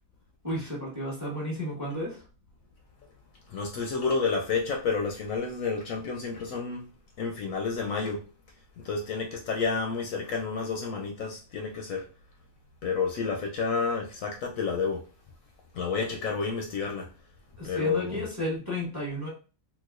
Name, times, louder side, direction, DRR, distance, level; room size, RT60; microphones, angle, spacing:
voice 1, 0.4-2.2 17.6-19.3, left 1 dB, 15° right, 1.0 m, -33 dB
voice 2, 3.5-6.9 7.2-8.3 8.8-12.1 12.8-15.0 15.7-17.1 17.6-18.3, left 5 dB, 70° left, 0.9 m, -30 dB
4.0 x 2.4 x 2.4 m
omnidirectional pair, 1.6 m